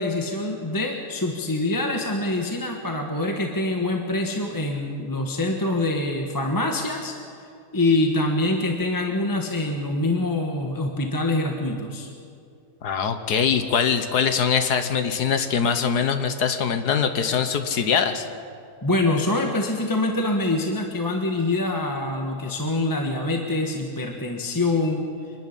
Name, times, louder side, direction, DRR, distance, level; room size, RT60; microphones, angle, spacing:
voice 1, 0.0-7.5 7.7-12.1 18.8-25.1, left 2 dB, 15° left, 2 dB, 1.4 m, -25 dB
voice 2, 12.8-18.2, left 7 dB, 75° left, 8 dB, 1.6 m, -22 dB
25.0 x 11.5 x 10.0 m, 2.3 s
omnidirectional pair, 1.7 m